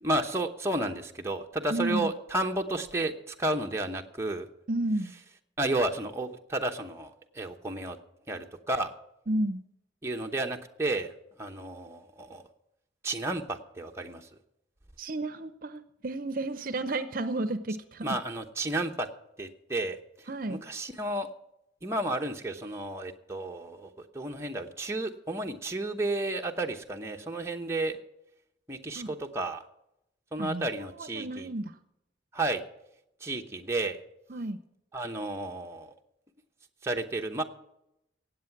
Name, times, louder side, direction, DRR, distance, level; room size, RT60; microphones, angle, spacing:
voice 1, 0.0-4.5 5.6-8.0 8.3-8.9 10.0-11.1 11.4-12.4 13.0-14.3 18.0-19.1 19.4-20.0 20.5-21.3 21.8-28.0 28.7-29.6 30.3-31.5 32.3-32.6 33.2-34.0 34.9-35.9 36.8-37.4, right 2 dB, 15° right, 2 dB, 0.9 m, -32 dB
voice 2, 1.7-2.1 4.7-5.1 9.3-9.6 15.0-18.2 20.3-20.6 29.0-29.1 30.4-30.7 31.0-31.7 34.3-34.6, right 2 dB, 50° right, 11 dB, 0.7 m, -32 dB
17.5 x 8.2 x 5.9 m, 0.84 s
head